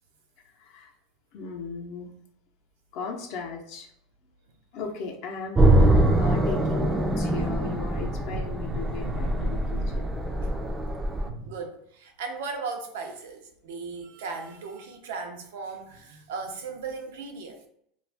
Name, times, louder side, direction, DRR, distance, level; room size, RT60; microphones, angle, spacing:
voice 1, 0.6-0.9 1.3-2.1 2.9-3.9 4.7-10.1, left 5 dB, 60° left, 1 dB, 0.5 m, -37 dB
sound 1, 5.5-11.3, right 1 dB, 10° right, 0.4 m, -23 dB
voice 2, 7.6-10.5 11.2-17.7, right 4 dB, 85° right, 4 dB, 0.6 m, -37 dB
2.4 x 2.3 x 3.3 m, 0.70 s
supercardioid pair, 130°, 0 cm